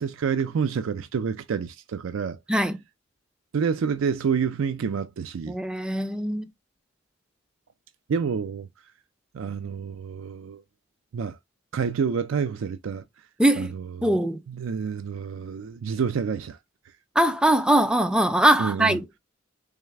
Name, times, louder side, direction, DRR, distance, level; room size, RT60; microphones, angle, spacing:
voice 1, 0.0-2.4 3.5-5.6 8.1-8.7 9.3-10.6 11.1-11.4 11.7-13.0 13.6-14.2 14.5-16.6 18.6-19.0, right 6 dB, 90° right, 0.4 m, -28 dB
voice 2, 5.5-6.5 13.4-13.7 14.0-14.4 17.2-19.2, right 1 dB, 5° right, 0.3 m, -21 dB
3.6 x 3.1 x 3.2 m
head